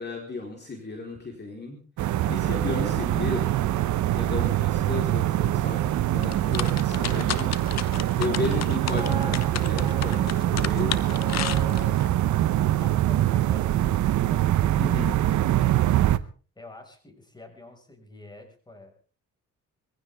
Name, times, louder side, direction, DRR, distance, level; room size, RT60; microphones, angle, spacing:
voice 1, 0.0-1.8 2.3-3.5 4.1-5.8 6.1-7.6 8.2-11.3 14.8-15.2, left 3 dB, 35° left, 1 dB, 4.3 m, -34 dB
sound 1, 2.0-16.2, right 13 dB, 70° right, 0.9 m, -24 dB
sound 2, 6.2-12.1, left 10 dB, 60° left, 0.9 m, -33 dB
sound 3, 8.8-14.5 14.8-15.0, right 1 dB, 15° right, 4.2 m, -41 dB
voice 2, 12.8-14.7 15.7-16.2 16.6-18.9, left 2 dB, 15° left, 4 dB, 5.7 m, -48 dB
22.0 x 16.0 x 3.6 m, 0.39 s
cardioid pair, 90°, 30 cm